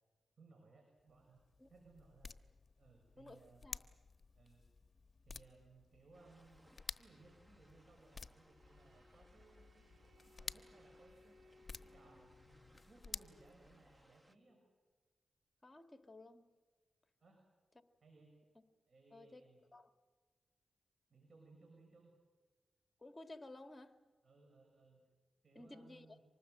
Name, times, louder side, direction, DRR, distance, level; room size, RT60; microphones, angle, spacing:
voice 1, 0.4-1.4 1.7-2.5 2.8-3.7 4.3-4.7 5.2-6.6 7.0-9.9 10.2-11.4 11.6-14.6 17.2-17.4 18.0-18.3 18.9-19.6 21.1-22.1 24.2-25.0 25.4-26.2, right 3 dB, 60° right, 6.1 m, -64 dB
sound 1, 1.0-14.2, left 4 dB, 45° left, 1.2 m, -54 dB
voice 2, 3.2-3.8 15.6-16.5 19.1-19.4 19.7-19.9 23.0-24.0 25.6-26.1, left 2 dB, 25° left, 2.2 m, -55 dB
sound 2, 6.1-14.4, equal, 15° right, 1.4 m, -70 dB
Bowed string instrument, 8.2-12.9, left 1 dB, 75° right, 4.7 m, -67 dB
25.5 x 19.5 x 7.9 m
cardioid pair, 50°, 0 cm